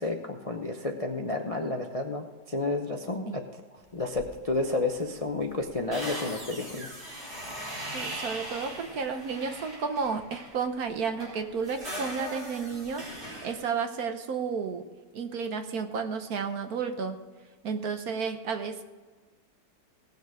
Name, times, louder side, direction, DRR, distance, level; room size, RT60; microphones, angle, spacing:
voice 1, 0.0-3.4 3.9-6.9, left 2 dB, 35° left, 3 dB, 0.6 m, -31 dB
sound 1, 4.1-4.6 4.9-5.0 5.3-10.6 11.0-13.6, right 1 dB, 30° right, 4.5 m, -40 dB
voice 2, 7.9-14.8 15.1-17.2 17.6-18.8, right 5 dB, 60° right, 7 dB, 1.3 m, -32 dB
18.5 x 6.7 x 4.8 m, 1.4 s
omnidirectional pair, 1.9 m